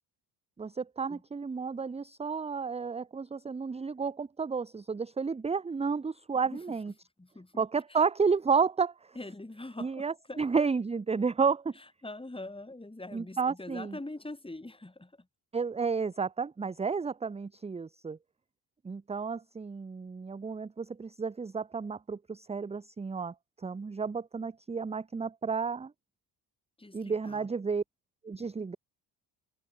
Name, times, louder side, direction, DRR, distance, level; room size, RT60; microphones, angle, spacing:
voice 1, 0.6-6.9 7.6-8.9 9.8-11.7 13.1-14.0 15.5-18.2 18.8-23.3 23.6-25.9 26.9-27.8 28.2-28.8, right 5 dB, 15° right, 0.5 m, -31 dB
voice 2, 7.2-7.6 7.9-8.0 9.1-10.4 11.7-15.3 26.8-27.5, left 2 dB, 10° left, 5.1 m, -43 dB
cardioid pair, 80°, 45 cm